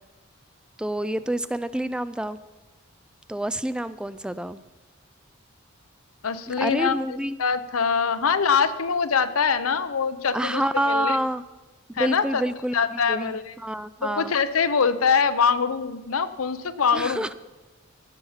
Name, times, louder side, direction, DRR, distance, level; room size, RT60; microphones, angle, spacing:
voice 1, 0.8-2.4 3.3-4.6 6.5-7.4 10.3-11.4 12.0-14.3 16.9-17.3, right 1 dB, 5° right, 14 dB, 0.3 m, -28 dB
voice 2, 6.2-11.2 12.0-12.4 12.7-13.5 14.0-17.3, left 6 dB, 85° left, 12 dB, 0.7 m, -24 dB
16.0 x 7.1 x 5.7 m, 1.2 s
head